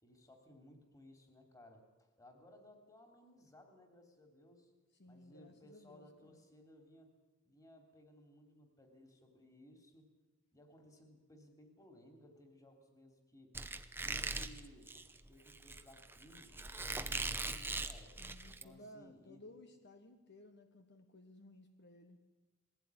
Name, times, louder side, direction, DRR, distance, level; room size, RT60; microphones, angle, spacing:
voice 1, 0.0-4.7 5.1-7.1 7.4-10.1 10.5-13.5 14.0-14.9 15.3-18.2 18.5-19.4, left 1 dB, 15° left, 5 dB, 3.2 m, -61 dB
voice 2, 5.0-6.4 18.2-22.2, left 1 dB, 55° left, 6 dB, 1.4 m, -58 dB
Squeak, 13.5-18.6, right 3 dB, 10° right, 0.9 m, -41 dB
20.0 x 15.5 x 9.8 m, 1.2 s
head